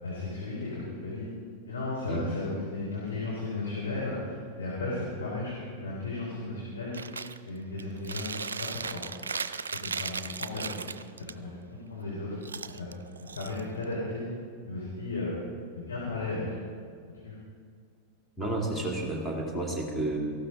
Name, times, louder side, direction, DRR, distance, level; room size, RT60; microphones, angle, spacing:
voice 1, 0.0-1.2 1.7-4.3 4.6-5.5 5.8-6.9 7.4-8.3 8.6-9.0 9.7-10.8 11.2-12.4 12.8-12.9 13.3-14.2 14.6-15.3 15.7-16.5 17.2-17.3, left 2 dB, 70° left, -6 dB, 3.6 m, -35 dB
Chewing mastication, 6.9-7.4 7.8-11.3 12.4-13.9, right 5 dB, 70° right, 0.4 m, -36 dB
voice 2, 18.4-20.2, right 2 dB, ahead, -2 dB, 2.6 m, -31 dB
17.5 x 15.0 x 3.8 m, 2.2 s
figure-of-eight pair, 90°, 0 cm